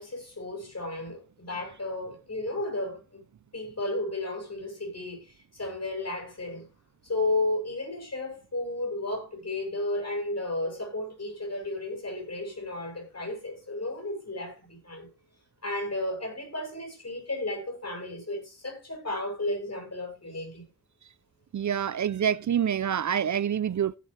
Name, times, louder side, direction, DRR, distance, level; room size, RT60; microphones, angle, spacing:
voice 1, 0.0-3.2 3.5-6.7 7.0-15.1 15.6-20.6, left 2 dB, 50° left, 7.4 m, -33 dB
voice 2, 21.5-24.0, right 9 dB, 60° right, 0.5 m, -26 dB
15.5 x 9.0 x 3.3 m
wide cardioid pair, 65°, 34 cm